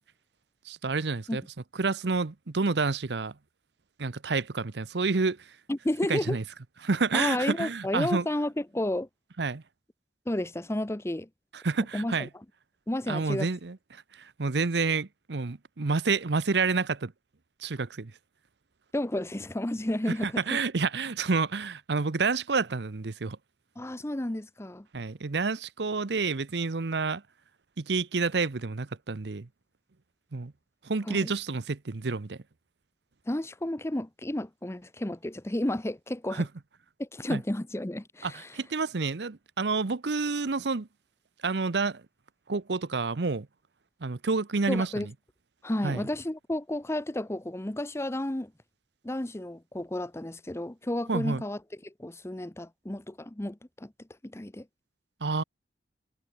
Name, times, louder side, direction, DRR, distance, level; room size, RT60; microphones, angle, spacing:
voice 1, 0.6-1.4 1.8-3.3 4.0-5.6 6.1-6.4 6.8-8.3 9.4-9.6 11.5-12.3 13.1-17.1 17.6-18.1 20.2-23.4 24.9-27.2 27.8-29.5 30.3-30.5 30.8-32.4 36.3-36.5 37.3-37.4 38.2-40.9 41.4-42.0 42.5-43.5 44.0-45.1 45.8-46.1 51.1-51.4 55.2-55.4, right 4 dB, 70° right, 0.8 m, -29 dB
voice 2, 5.7-6.4 7.1-9.1 10.3-11.3 11.9-12.1 12.9-13.5 18.9-20.4 23.8-24.9 31.1-31.3 33.3-36.5 37.0-38.5 44.7-45.1 45.6-48.5 49.0-54.7, left 1 dB, 15° left, 0.8 m, -32 dB
head